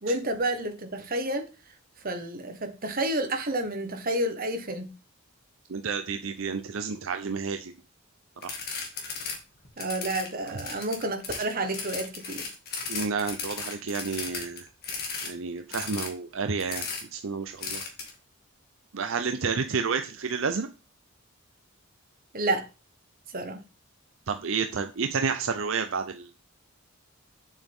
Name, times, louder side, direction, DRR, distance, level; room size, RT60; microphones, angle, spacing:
voice 1, 0.0-1.5 2.0-4.9 9.8-12.5 22.3-22.6 23.3-23.6, right 1 dB, 45° right, 1.4 m, -30 dB
voice 2, 5.7-7.7 8.4-8.6 12.9-14.7 15.2-16.9 17.1-17.8 18.9-20.7 24.3-26.3, right 5 dB, 70° right, 0.6 m, -30 dB
sound 1, 8.4-9.4 9.7-15.3 15.7-16.1 16.6-17.0 17.6-18.1, left 5 dB, 50° left, 2.1 m, -35 dB
8.3 x 7.2 x 3.6 m
head